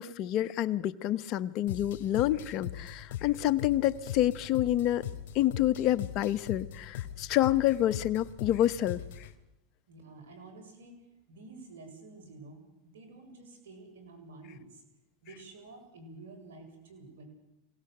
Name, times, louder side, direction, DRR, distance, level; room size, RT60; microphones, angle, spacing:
voice 1, 0.0-5.0 5.3-9.3 15.3-15.4, left 13 dB, 50° left, 14 dB, 1.1 m, -28 dB
sound 1, 1.7-9.3, left 11 dB, 65° left, 2.8 m, -40 dB
voice 2, 9.9-14.8 15.2-17.3, right 3 dB, 80° right, 6 dB, 7.3 m, -50 dB
25.0 x 18.0 x 8.1 m, 0.94 s
hypercardioid pair, 105°, 0 cm